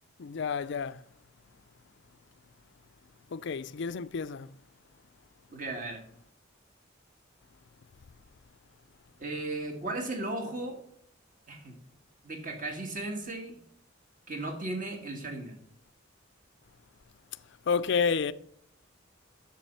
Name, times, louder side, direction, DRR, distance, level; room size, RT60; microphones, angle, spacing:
voice 1, 0.2-1.0 3.3-4.5 17.7-18.3, left 5 dB, 60° left, 0.4 m, -30 dB
voice 2, 5.5-6.0 9.2-10.8 11.5-11.8 12.2-13.6 14.3-15.6, right 2 dB, 40° right, 1.8 m, -36 dB
7.4 x 7.3 x 6.7 m
head